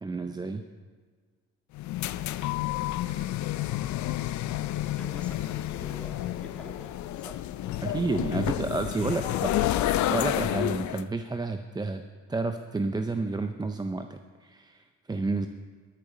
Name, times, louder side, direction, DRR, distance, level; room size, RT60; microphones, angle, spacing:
voice 1, 0.0-0.6 7.8-9.5 9.9-15.5, right 3 dB, 15° right, 7 dB, 0.4 m, -31 dB
sound 1, 1.7-11.0, left 14 dB, 70° left, 0.5 m, -30 dB
voice 2, 5.0-8.0 8.3-9.9, equal, 5° left, 2 dB, 1.8 m, -47 dB
13.5 x 10.0 x 4.1 m, 1.5 s
cardioid pair, 90°, 30 cm